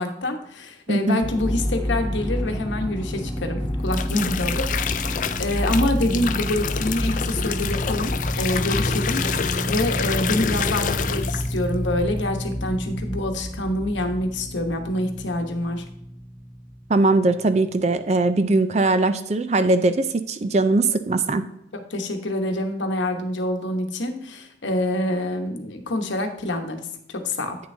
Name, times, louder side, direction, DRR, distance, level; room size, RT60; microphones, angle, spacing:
voice 1, 0.0-4.7 5.0-15.8 21.7-27.6, left 1 dB, 80° left, 5 dB, 1.0 m, -26 dB
sound 1, 1.2-16.9 17.3-17.4, equal, 20° right, 2.6 m, -29 dB
sound 2, 3.6-11.6 11.9-12.3, left 7 dB, 45° left, 0.4 m, -28 dB
voice 2, 16.9-21.4, right 2 dB, 35° right, 11 dB, 0.4 m, -20 dB
8.8 x 6.5 x 2.7 m, 0.78 s
head